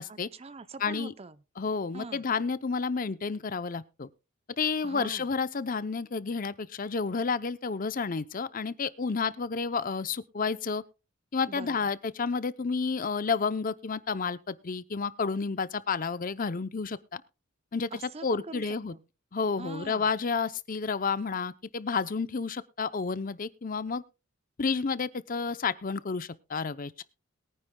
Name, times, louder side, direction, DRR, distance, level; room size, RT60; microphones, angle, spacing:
voice 1, 0.1-1.4 1.9-2.3 4.8-5.3 11.5-11.8 17.9-19.0 19.6-20.1, right 3 dB, 30° right, 0.6 m, -43 dB
voice 2, 0.8-1.1 1.6-4.1 4.6-10.8 11.3-17.2 17.7-17.9 18.2-18.9 19.3-24.0 24.6-27.0, left 5 dB, 40° left, 0.6 m, -30 dB
22.0 x 9.9 x 2.2 m
head